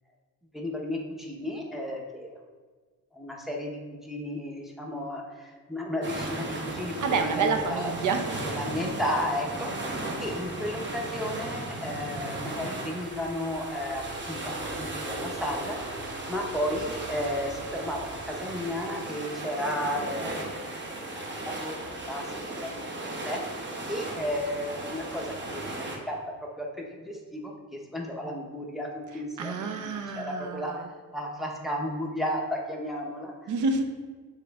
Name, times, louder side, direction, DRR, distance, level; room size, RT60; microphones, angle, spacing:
voice 1, 0.5-2.4 3.1-7.9 8.4-20.8 21.1-21.8 22.0-22.3 22.6-23.4 23.9-26.2 26.6-30.7 31.1-33.5, left 1 dB, ahead, -1 dB, 0.6 m, -33 dB
sound 1, 6.0-26.0, right 2 dB, 30° right, 0.8 m, -36 dB
voice 2, 7.0-8.2 29.4-30.9 33.5-33.8, right 4 dB, 60° right, 6 dB, 0.6 m, -28 dB
7.4 x 3.8 x 3.4 m, 1.4 s
wide cardioid pair, 170°, 35 cm